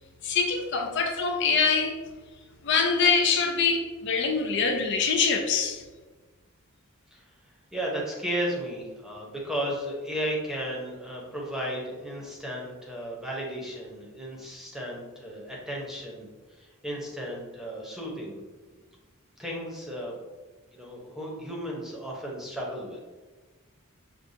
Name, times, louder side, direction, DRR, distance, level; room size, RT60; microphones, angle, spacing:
voice 1, 0.2-2.0 2.6-5.9, left 5 dB, 55° left, 3 dB, 0.4 m, -24 dB
voice 2, 7.7-18.4 18.7-18.8 19.4-20.1 20.7-23.0, equal, ahead, -3 dB, 0.8 m, -34 dB
6.4 x 2.2 x 2.7 m, 1.3 s
head